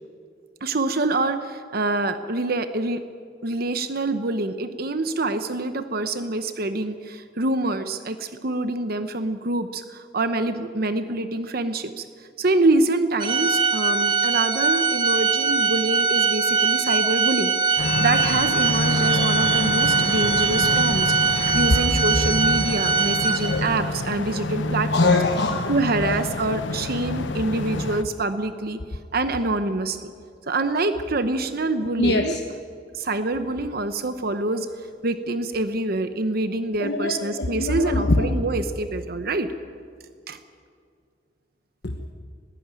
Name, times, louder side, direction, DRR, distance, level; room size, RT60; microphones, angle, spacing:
voice 1, 0.6-3.0 3.4-12.1 12.4-25.2 25.7-28.8 29.1-30.1 30.5-32.3 32.9-39.5 40.3-40.4, right 2 dB, 55° right, 9 dB, 1.0 m, -26 dB
Organ, 13.2-23.8, right 4 dB, 25° right, 1.0 m, -22 dB
sound 1, 17.8-28.0, left 2 dB, 90° left, 0.9 m, -28 dB
voice 2, 24.9-25.7 26.0-26.2 32.0-32.4 36.8-38.3 41.8-42.1, left 2 dB, 65° left, 3 dB, 1.2 m, -23 dB
20.5 x 15.5 x 9.0 m, 2.1 s
head